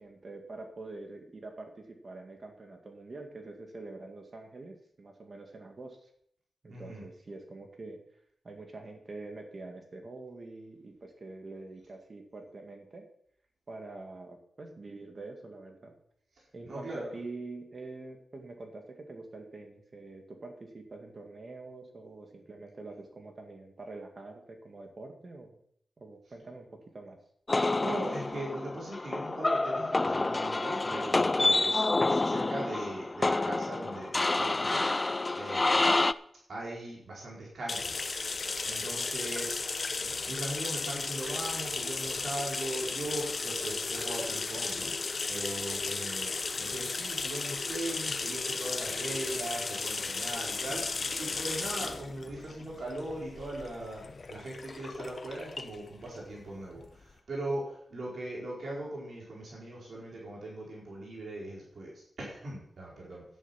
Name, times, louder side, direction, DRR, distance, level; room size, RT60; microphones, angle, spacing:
voice 1, 0.0-6.1 6.6-8.0 8.4-13.1 13.7-15.9 16.5-25.5 26.0-27.2 29.8-29.9, right 3 dB, 45° right, 3 dB, 2.0 m, -45 dB
voice 2, 6.7-7.0 16.6-17.1 27.8-35.9 36.5-38.1 38.6-39.6 40.2-54.0 54.3-63.2, right 1 dB, 65° right, -4 dB, 4.5 m, -39 dB
sound 1, 27.5-36.1, left 2 dB, 25° left, 0.4 m, -28 dB
sound 2, 37.7-57.1, left 4 dB, 45° left, 1.0 m, -35 dB
11.0 x 10.5 x 5.9 m, 0.67 s
wide cardioid pair, 125°, 0 cm